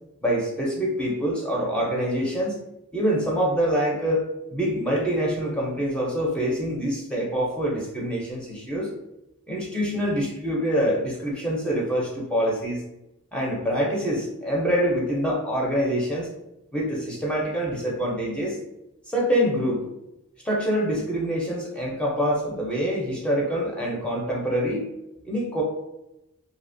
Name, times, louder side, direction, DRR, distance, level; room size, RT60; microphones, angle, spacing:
voice 1, 0.2-2.6 2.9-8.9 9.5-12.8 13.3-16.3 16.7-18.6 19.1-19.8 20.4-24.9 25.2-25.6, equal, 5° left, -3 dB, 0.4 m, -25 dB
2.7 x 2.1 x 2.5 m, 0.90 s
head